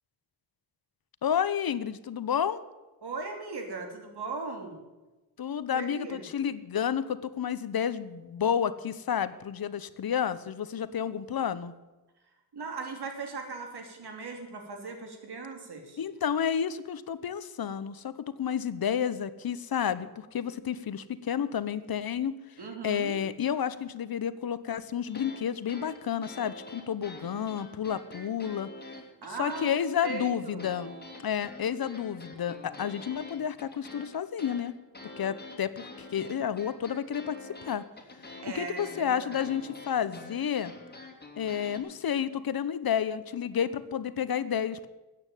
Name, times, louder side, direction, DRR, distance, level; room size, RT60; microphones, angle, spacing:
voice 1, 1.2-2.6 5.4-11.7 16.0-22.4 22.8-28.7 29.4-30.9 31.2-34.7 35.2-37.4 37.7-37.8 38.5-40.7 41.4-44.9, left 8 dB, 65° left, 14 dB, 0.9 m, -30 dB
voice 2, 3.0-4.8 5.7-6.2 12.5-16.0 22.6-23.2 29.2-30.7 38.4-39.5, right 4 dB, 80° right, 4 dB, 3.1 m, -38 dB
sound 1, 25.0-25.4 25.7-29.8 30.0-41.8, left 2 dB, 25° left, 2.9 m, -46 dB
14.5 x 8.9 x 9.1 m, 1.1 s
wide cardioid pair, 95°, 39 cm